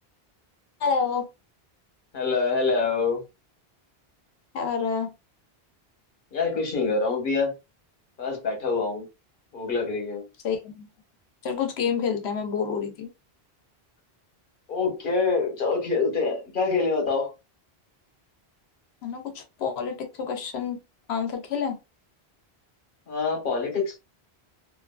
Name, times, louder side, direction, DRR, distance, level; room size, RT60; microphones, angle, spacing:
voice 1, 0.8-1.3 4.5-5.1 10.4-10.9 11.4-13.1 19.0-20.8 21.1-21.8, left 6 dB, 85° left, 1.0 m, -28 dB
voice 2, 2.1-3.2 6.3-7.5 8.2-9.0 9.5-10.3 14.7-17.3 23.1-24.0, left 4 dB, 55° left, 1.2 m, -25 dB
2.6 x 2.4 x 2.3 m
omnidirectional pair, 1.1 m